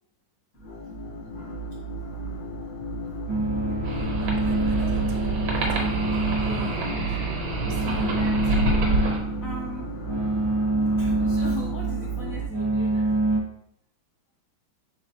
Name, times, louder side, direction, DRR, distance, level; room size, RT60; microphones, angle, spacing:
sound 1, 0.5-12.5, right 4 dB, 50° left, 1.3 m, -33 dB
sound 2, 3.3-13.4, right 2 dB, 20° right, 0.5 m, -27 dB
voice 1, 3.7-7.3 7.6-8.4, right 2 dB, 70° right, 1.0 m, -40 dB
sound 3, 3.8-9.2, right 1 dB, 85° right, 1.7 m, -28 dB
voice 2, 8.0-8.4 9.4-10.0 11.0-13.4, left 2 dB, 80° left, 0.7 m, -39 dB
5.0 x 3.6 x 2.7 m
omnidirectional pair, 2.2 m